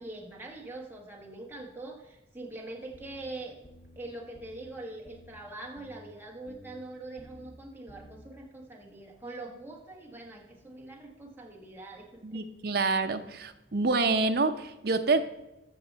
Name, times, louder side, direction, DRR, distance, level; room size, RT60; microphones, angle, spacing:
voice 1, 0.0-3.6 3.9-12.4, right 2 dB, 10° right, -1 dB, 1.3 m, -43 dB
sound 1, 2.9-3.3 3.6-4.0 4.3-4.7 5.0-5.4 5.8-6.1 6.5-6.8 7.2-7.5 7.9-8.2, right 1 dB, 40° left, 1.4 m, -52 dB
voice 2, 12.2-15.2, right 3 dB, 55° right, 7 dB, 0.7 m, -27 dB
13.0 x 6.6 x 4.0 m, 0.94 s
head